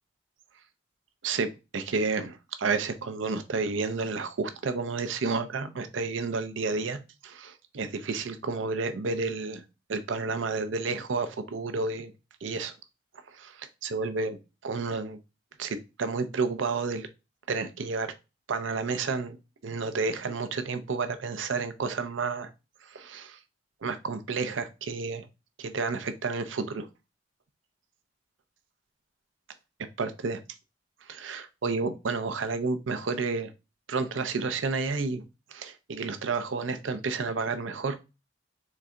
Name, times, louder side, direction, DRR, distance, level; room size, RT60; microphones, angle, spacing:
voice 1, 1.2-9.6 9.9-12.1 12.4-12.7 13.3-15.2 15.6-17.1 17.5-18.1 18.5-19.4 19.6-22.5 22.8-23.4 23.8-25.3 25.6-26.9 30.0-30.4 31.1-33.5 33.9-35.2 35.5-38.0, right 4 dB, 90° right, 0.6 m, -31 dB
4.0 x 3.3 x 3.6 m
head